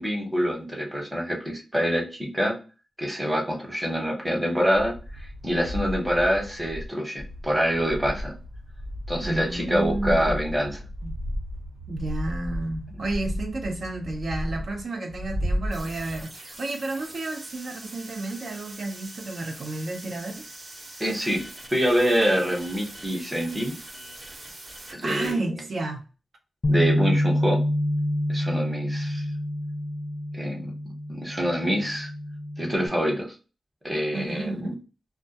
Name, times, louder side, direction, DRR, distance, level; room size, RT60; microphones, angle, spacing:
voice 1, 0.0-2.6 3.0-8.3 9.1-10.8 21.0-21.4 21.7-23.7 24.9-25.5 26.7-27.6 28.3-29.2 30.3-30.7 31.1-32.1 32.6-33.3 33.8-34.7, equal, 15° right, 0.9 m, -26 dB
sound 1, 4.7-6.9 7.2-16.2, equal, 90° right, 1.0 m, -34 dB
voice 2, 9.2-10.3 11.0-11.2 11.9-20.4 25.0-26.0 34.1-34.8, right 2 dB, 65° right, 0.4 m, -31 dB
sound 2, 15.7-25.3, right 1 dB, 50° right, 0.8 m, -43 dB
Bass guitar, 26.6-32.9, left 1 dB, 45° left, 0.3 m, -27 dB
2.2 x 2.2 x 2.6 m
wide cardioid pair, 80°, 0 cm